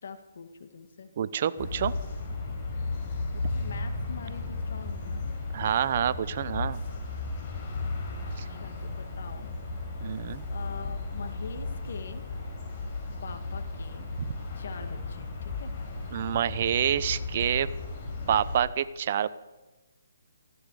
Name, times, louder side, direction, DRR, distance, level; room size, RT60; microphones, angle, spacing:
voice 1, 0.0-1.1 3.3-5.2 8.2-9.5 10.5-12.2 13.2-14.0 14.6-15.7, left 5 dB, 60° left, 8 dB, 2.0 m, -44 dB
voice 2, 1.2-1.9 5.5-6.8 8.4-8.5 10.0-10.4 14.2-14.3 16.1-17.7 18.3-19.3, right 9 dB, 40° right, 16 dB, 0.8 m, -27 dB
sound 1, 1.6-18.6, left 3 dB, 35° left, 5.4 m, -35 dB
19.0 x 15.0 x 4.9 m, 1.2 s
hypercardioid pair, 155°, 0 cm